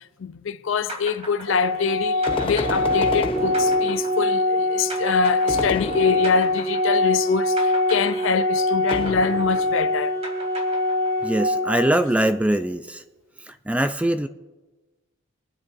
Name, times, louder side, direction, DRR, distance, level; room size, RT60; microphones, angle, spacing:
voice 1, 0.0-10.2, left 6 dB, 65° left, 0.5 m, -25 dB
sound 1, 0.9-7.3 7.6-11.4, right 1 dB, 30° right, 2.5 m, -37 dB
Organ, 1.5-12.5, left 1 dB, 65° right, 2.1 m, -23 dB
sound 2, 2.3-4.2 5.5-6.7 8.9-9.9, left 2 dB, 25° left, 0.7 m, -30 dB
voice 2, 11.2-13.0 13.5-14.3, right 1 dB, 5° right, 0.3 m, -22 dB
26.0 x 9.7 x 2.6 m
head